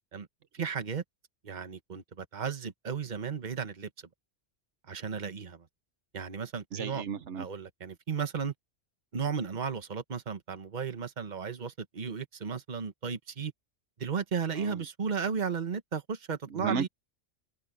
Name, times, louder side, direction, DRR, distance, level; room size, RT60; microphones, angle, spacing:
voice 1, 0.5-1.0 1.4-4.1 4.9-5.7 6.1-7.0 7.4-8.5 9.1-13.5 14.0-16.9, right 6 dB, 40° right, 1.3 m, -34 dB
voice 2, 6.7-7.4 14.6-14.8 16.5-16.9, right 5 dB, 85° right, 1.3 m, -33 dB
omnidirectional pair, 1.2 m